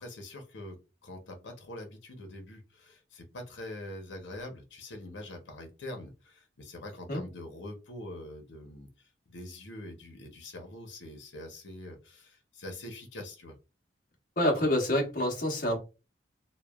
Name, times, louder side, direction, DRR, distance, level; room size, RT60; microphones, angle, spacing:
voice 1, 0.0-13.5, left 1 dB, 85° left, 0.8 m, -44 dB
voice 2, 14.4-15.8, left 1 dB, 50° left, 0.9 m, -27 dB
3.1 x 2.2 x 2.3 m
head